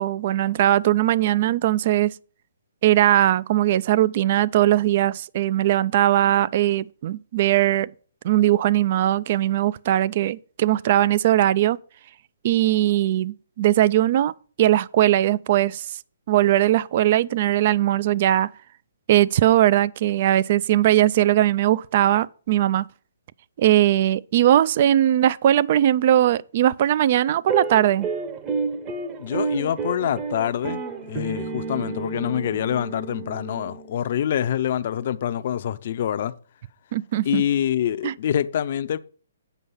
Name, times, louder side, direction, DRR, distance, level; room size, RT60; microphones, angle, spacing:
voice 1, 0.0-2.1 2.8-7.9 8.2-11.8 12.4-14.3 14.6-15.9 16.3-18.5 19.1-22.9 23.6-28.1 36.9-37.4 38.0-38.1, right 13 dB, 45° right, 0.3 m, -20 dB
sound 1, 27.5-34.0, right 4 dB, 25° right, 0.9 m, -31 dB
voice 2, 29.2-30.8 31.1-36.3 37.2-39.0, left 10 dB, 50° left, 0.5 m, -25 dB
8.1 x 5.4 x 5.5 m
hypercardioid pair, 150°, 0 cm